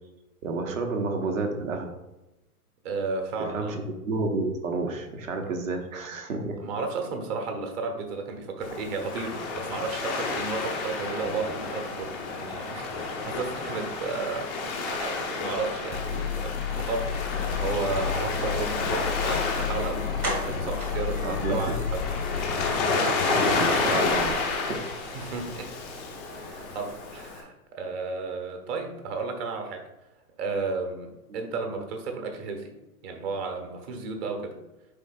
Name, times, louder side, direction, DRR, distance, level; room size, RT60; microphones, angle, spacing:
voice 1, 0.4-1.9 3.4-6.6 21.2-21.8 23.3-24.9 31.3-31.5, right 3 dB, 60° right, 4 dB, 1.3 m, -30 dB
voice 2, 2.8-3.8 6.6-17.2 17.4-20.1 20.5-22.0 25.1-25.7 26.3-29.8 30.4-32.7 33.0-34.6, right 4 dB, 40° right, 5 dB, 1.3 m, -33 dB
Waves surf, 8.6-27.4, left 4 dB, ahead, 0.3 m, -30 dB
sound 1, 15.9-22.8, left 8 dB, 80° left, 0.6 m, -32 dB
sound 2, 20.2-22.0 22.3-22.4 22.8-23.0 23.2-23.3, right 1 dB, 80° right, 2.1 m, -35 dB
9.9 x 3.9 x 2.5 m, 0.97 s
hypercardioid pair, 120°, 45 cm